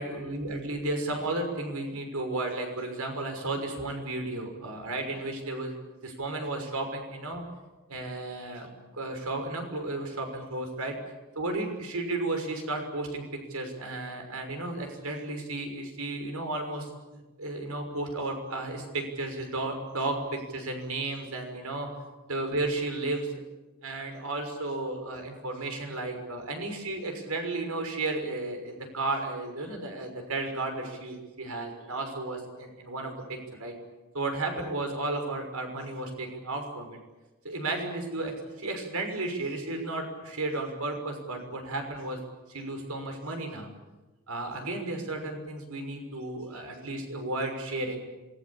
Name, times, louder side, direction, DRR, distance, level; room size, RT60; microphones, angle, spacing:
voice 1, 0.0-5.7 6.0-7.4 7.9-8.7 8.9-11.0 11.4-21.9 22.3-23.4 23.8-33.7 34.1-37.0 37.4-42.2 42.5-43.7 44.3-48.0, right 2 dB, 90° right, 4 dB, 6.0 m, -33 dB
27.5 x 21.5 x 8.7 m, 1.1 s
head